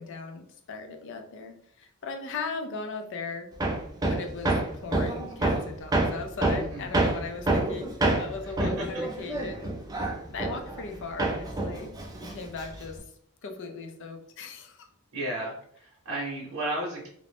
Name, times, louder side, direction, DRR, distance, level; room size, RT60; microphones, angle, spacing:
voice 1, 0.0-3.5 4.0-9.7 10.3-11.9 12.2-13.0 13.4-14.9, left 4 dB, 60° left, 5 dB, 0.4 m, -38 dB
Hammer, 3.6-10.9 11.2-13.0, right 2 dB, 20° right, 0.3 m, -27 dB
voice 2, 6.5-6.9 8.6-9.3 15.1-17.1, right 1 dB, 85° right, -4 dB, 0.7 m, -34 dB
2.5 x 2.1 x 3.3 m, 0.67 s
head